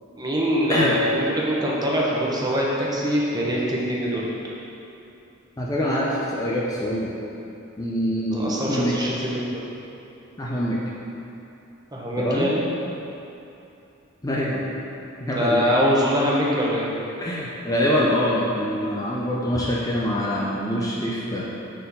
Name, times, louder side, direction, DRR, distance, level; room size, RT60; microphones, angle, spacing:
voice 1, 0.2-4.3 8.3-9.6 11.9-12.7 15.3-16.9, equal, 20° right, -5 dB, 0.9 m, -23 dB
voice 2, 5.6-7.1 7.8-8.9 10.4-10.8 12.2-12.5 14.2-14.6 15.2-15.7 17.2-21.4, equal, 15° left, -5 dB, 0.6 m, -24 dB
6.2 x 4.4 x 5.4 m, 2.9 s
head